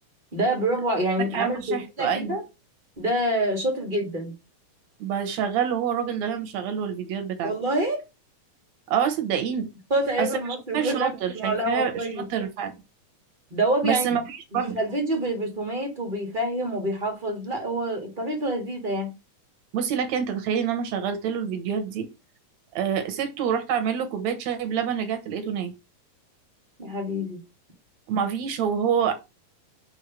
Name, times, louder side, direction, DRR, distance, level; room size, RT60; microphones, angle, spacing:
voice 1, 0.3-2.4 3.0-4.3 7.4-8.0 9.9-12.2 13.5-14.1 14.5-19.1 26.8-27.4, right 1 dB, 25° right, 1.0 m, -27 dB
voice 2, 1.3-2.4 5.0-7.5 8.9-9.7 10.2-10.3 10.7-12.8 13.8-14.8 19.7-22.1 22.8-25.7 28.1-29.1, right 8 dB, 65° right, 2.1 m, -27 dB
6.4 x 3.6 x 5.9 m
omnidirectional pair, 3.9 m